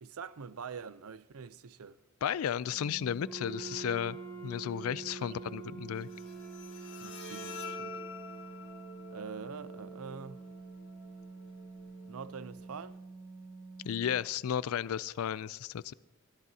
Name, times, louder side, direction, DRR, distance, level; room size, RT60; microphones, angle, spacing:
voice 1, 0.0-2.0 5.2-5.6 7.0-8.0 9.1-10.4 12.1-13.0, right 6 dB, 85° right, 0.5 m, -45 dB
voice 2, 2.2-4.2 4.4-6.1 13.8-15.9, left 9 dB, 80° left, 0.4 m, -33 dB
sound 1, 2.7-14.1, right 3 dB, 25° right, 4.4 m, -49 dB
Wind instrument woodwind instrument, 3.2-7.9, right 6 dB, 60° right, 5.2 m, -46 dB
Bowed string instrument, 5.9-13.0, left 2 dB, 60° left, 1.7 m, -47 dB
20.5 x 13.5 x 2.8 m
head